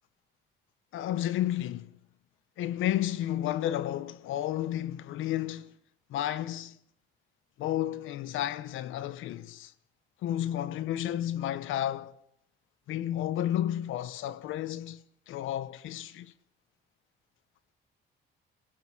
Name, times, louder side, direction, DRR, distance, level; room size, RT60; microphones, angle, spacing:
voice 1, 0.9-2.0 2.6-5.7 6.1-6.8 7.6-9.7 10.2-12.1 12.9-16.3, left 12 dB, 90° left, 1.1 m, -32 dB
29.5 x 16.5 x 6.2 m
cardioid pair, 90°, 20 cm